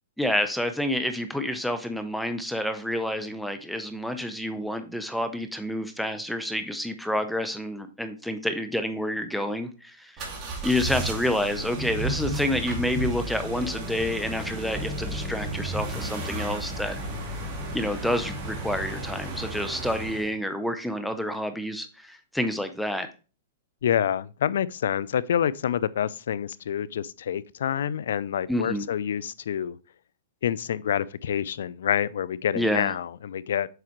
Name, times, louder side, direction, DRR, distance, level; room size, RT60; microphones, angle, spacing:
voice 1, 0.2-10.3 10.6-17.0 17.7-23.1 28.5-28.9 32.6-33.0, left 1 dB, ahead, 0.6 m, -28 dB
sound 1, 10.2-20.3, right 1 dB, 30° right, 2.2 m, -33 dB
voice 2, 23.8-29.8 30.4-33.7, left 9 dB, 75° left, 0.4 m, -27 dB
7.8 x 4.8 x 3.0 m
hypercardioid pair, 140°, 0 cm